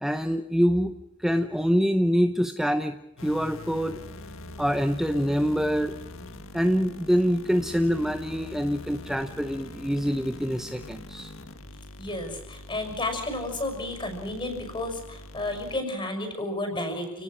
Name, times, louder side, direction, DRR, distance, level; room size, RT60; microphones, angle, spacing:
voice 1, 0.0-4.0 4.6-6.0 6.5-11.3, equal, ahead, 8 dB, 0.8 m, -25 dB
sound 1, 3.2-15.8, left 2 dB, 65° left, 1.8 m, -43 dB
voice 2, 12.0-17.2, left 2 dB, 20° left, 6 dB, 6.1 m, -32 dB
29.5 x 18.5 x 6.3 m, 0.95 s
head